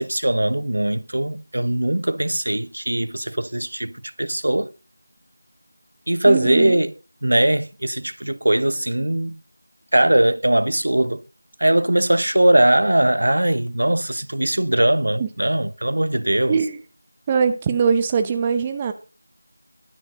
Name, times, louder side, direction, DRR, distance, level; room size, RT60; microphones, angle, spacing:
voice 1, 0.0-4.7 6.1-6.9 7.2-9.4 9.9-11.2 11.6-16.6, right 1 dB, 80° right, 0.9 m, -20 dB
voice 2, 6.3-6.8 15.2-15.3 16.5-16.7 17.3-18.9, right 6 dB, 10° right, 0.6 m, -21 dB
12.0 x 8.0 x 5.1 m
figure-of-eight pair, 175°, 0 cm